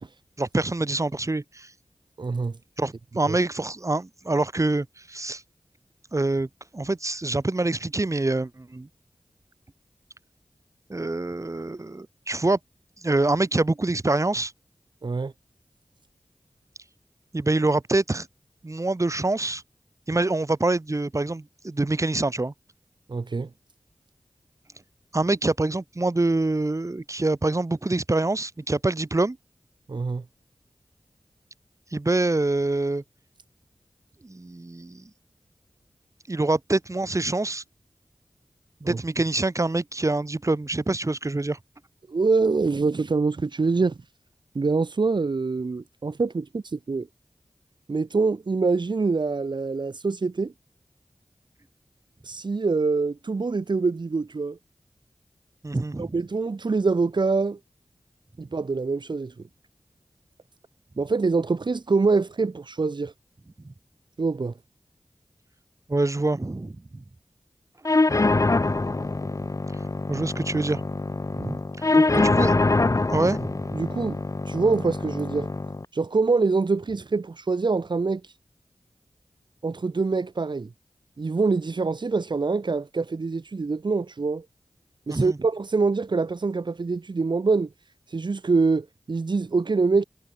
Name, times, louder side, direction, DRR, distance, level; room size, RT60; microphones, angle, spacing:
voice 1, 0.4-1.7 2.8-5.4 6.1-6.5 6.7-8.9 10.9-12.6 13.0-14.5 17.3-18.3 18.6-19.6 20.1-22.5 25.1-29.4 31.9-33.0 34.2-35.1 36.3-37.6 38.8-41.6 55.6-56.1 63.6-63.7 65.9-67.0 70.1-70.8 71.3-71.9 72.1-72.6 73.1-73.8 85.1-85.4, right 2 dB, 40° right, 3.5 m, -25 dB
voice 2, 2.2-2.5 3.3-3.4 15.0-15.3 23.1-23.5 29.9-30.2 38.8-39.0 42.1-44.0 44.5-47.1 47.9-50.5 52.2-54.6 56.0-57.6 58.4-59.3 61.0-63.1 64.2-64.5 71.9-72.6 73.7-74.2 74.5-75.5 75.9-78.2 79.6-80.7 81.2-84.4 85.1-87.7 88.1-90.0, right 4 dB, 65° right, 2.1 m, -25 dB
sound 1, 67.8-75.8, left 2 dB, 40° left, 1.5 m, -24 dB
wide cardioid pair, 50°, 8 cm